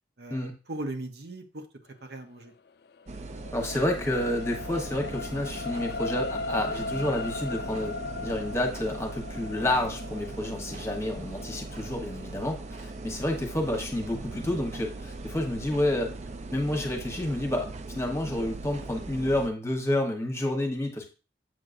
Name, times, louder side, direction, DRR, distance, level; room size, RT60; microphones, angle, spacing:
voice 1, 0.2-1.7 2.0-2.5, right 2 dB, 65° right, 5 dB, 0.9 m, -38 dB
sound 1, 2.9-15.4 15.9-16.0, left 3 dB, 60° left, 0.3 m, -39 dB
sound 2, 3.1-19.5, right 3 dB, 40° right, 0.4 m, -40 dB
voice 2, 3.5-8.0 8.2-16.1 16.5-17.7 17.9-21.0, left 1 dB, 15° left, 3 dB, 1.1 m, -29 dB
7.6 x 6.2 x 2.6 m, 0.33 s
head